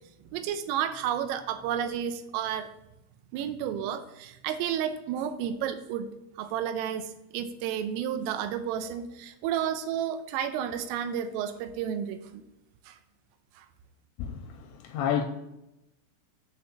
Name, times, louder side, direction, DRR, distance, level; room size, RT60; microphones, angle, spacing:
voice 1, 0.3-2.7 3.3-6.1 6.4-12.4 12.9-13.0 13.6-13.7, right 9 dB, 90° right, 3.4 m, -31 dB
voice 2, 14.2-15.3, left 8 dB, 80° left, 2.8 m, -30 dB
9.2 x 4.5 x 7.1 m
omnidirectional pair, 5.8 m